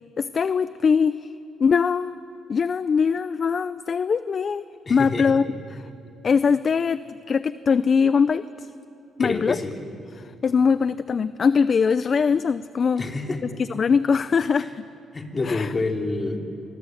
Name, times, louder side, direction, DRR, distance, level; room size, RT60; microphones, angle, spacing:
voice 1, 0.2-1.3 1.6-2.1 2.5-5.4 5.7-5.8 6.2-8.7 9.2-9.6 10.2-13.0 13.7-14.8 15.4-15.7, left 6 dB, 45° left, 15 dB, 0.5 m, -22 dB
voice 2, 4.8-5.4 9.2-9.8 13.0-13.4 15.1-16.4, left 3 dB, 30° left, 3 dB, 3.1 m, -27 dB
25.0 x 23.0 x 7.9 m, 2.7 s
cardioid pair, 90°, 0 cm